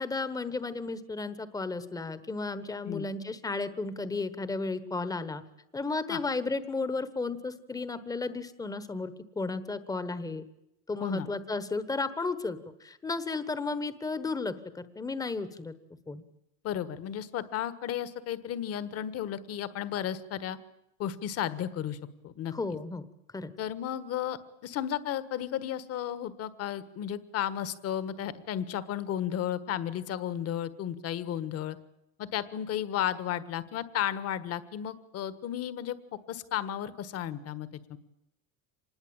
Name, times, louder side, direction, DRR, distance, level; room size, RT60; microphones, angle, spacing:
voice 1, 0.0-5.4 5.7-10.5 10.9-15.7 16.1-16.2 22.5-23.0 23.3-23.5, left 3 dB, 10° left, 13 dB, 1.2 m, -33 dB
voice 2, 16.6-20.6 21.0-22.0 22.2-22.5 23.6-31.8 32.2-36.0 36.3-38.0, left 10 dB, 35° left, 14 dB, 1.5 m, -33 dB
26.0 x 20.5 x 8.9 m, 0.85 s
cardioid pair, 160°, 41 cm